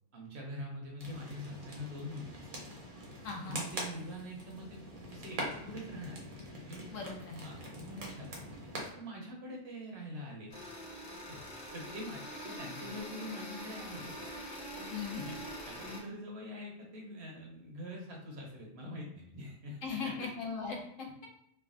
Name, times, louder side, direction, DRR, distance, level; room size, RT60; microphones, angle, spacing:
voice 1, 0.1-2.3 3.4-4.8 5.1-6.2 6.7-6.8 7.4-8.4 9.0-10.5 11.3-14.1 14.7-15.4 15.7-20.3, equal, 60° right, -1 dB, 0.9 m, -44 dB
sound 1, 1.0-8.9, right 1 dB, 40° right, 0.5 m, -44 dB
voice 2, 3.2-3.6 6.9-7.5 14.9-15.2 19.8-21.3, left 5 dB, 80° left, 0 dB, 1.1 m, -39 dB
sound 2, 5.0-8.3, equal, 85° right, 1.4 m, -61 dB
sound 3, 10.5-16.0, equal, 40° left, 0.6 m, -44 dB
3.2 x 2.2 x 2.4 m, 0.75 s
omnidirectional pair, 1.3 m